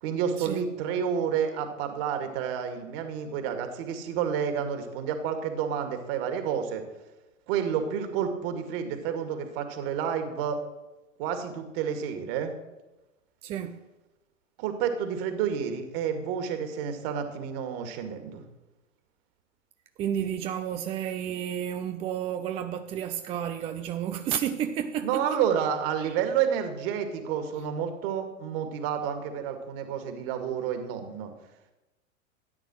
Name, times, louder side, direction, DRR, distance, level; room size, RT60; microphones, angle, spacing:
voice 1, 0.0-6.8 7.5-10.6 11.2-12.5 14.6-18.4 25.0-31.3, right 8 dB, 45° right, 7 dB, 2.3 m, -30 dB
voice 2, 13.4-13.8 20.0-25.4 26.0-26.2, right 9 dB, 15° right, 8 dB, 0.4 m, -31 dB
13.5 x 9.2 x 6.3 m, 1.0 s
figure-of-eight pair, 95°, 40 cm